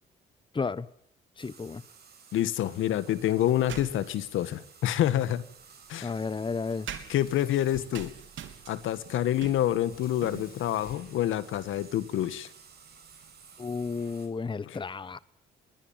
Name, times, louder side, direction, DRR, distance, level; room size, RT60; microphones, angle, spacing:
voice 1, 0.5-0.9 1.4-1.8 6.0-6.9 13.6-15.2, left 4 dB, 25° left, 1.1 m, -32 dB
sound 1, 1.4-14.3, right 6 dB, 50° right, 7.8 m, -54 dB
voice 2, 2.3-5.4 5.9-6.1 7.1-8.1 8.7-12.5 14.7-14.8, left 12 dB, 80° left, 1.7 m, -27 dB
sound 2, 3.1-4.3 5.4-14.1, right 9 dB, 75° right, 3.5 m, -47 dB
Sink (filling or washing), 7.1-8.7 9.9-12.1, left 5 dB, 50° left, 5.0 m, -54 dB
22.0 x 20.5 x 7.4 m
cardioid pair, 90°, 20 cm